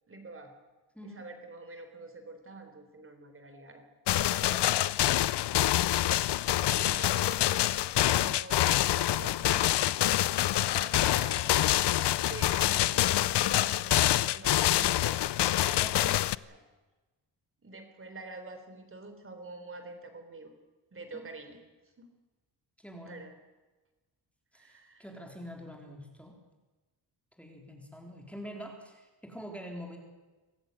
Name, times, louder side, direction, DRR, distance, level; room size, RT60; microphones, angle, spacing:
voice 1, 0.1-0.5 1.0-3.8 4.9-5.0 6.2-7.7 8.0-9.9 10.7-11.5 12.2-16.6 17.6-20.5 20.9-21.6 22.0-22.1 23.1-23.3 24.5-25.1, right 3 dB, 30° right, 6 dB, 3.7 m, -46 dB
sound 1, 4.1-16.4, left 13 dB, 70° left, 0.6 m, -26 dB
voice 2, 15.8-16.2 21.1-21.3 22.8-23.2 24.5-26.4 27.4-30.0, equal, 5° left, 1 dB, 3.8 m, -45 dB
24.5 x 15.5 x 9.1 m, 1.2 s
wide cardioid pair, 160°, 43 cm